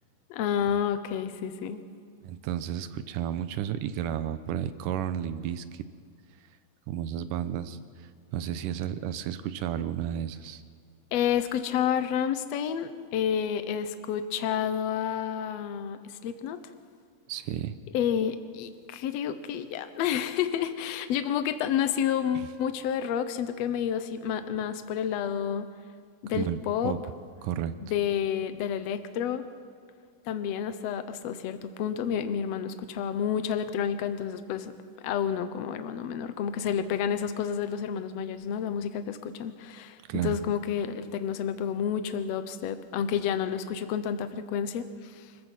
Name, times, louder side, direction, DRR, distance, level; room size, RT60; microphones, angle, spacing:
voice 1, 0.3-1.8 11.1-16.6 17.9-25.7 26.2-27.0 27.8-29.4 30.3-34.7 35.0-45.3, left 8 dB, 65° left, 10 dB, 1.9 m, -30 dB
voice 2, 2.2-5.8 6.9-7.8 8.3-10.6 17.3-17.8 22.3-22.5 26.3-26.6 26.8-27.0 27.4-27.7 40.1-40.4, right 10 dB, 90° right, 12 dB, 2.4 m, -32 dB
25.0 x 15.0 x 7.5 m, 2.1 s
omnidirectional pair, 3.7 m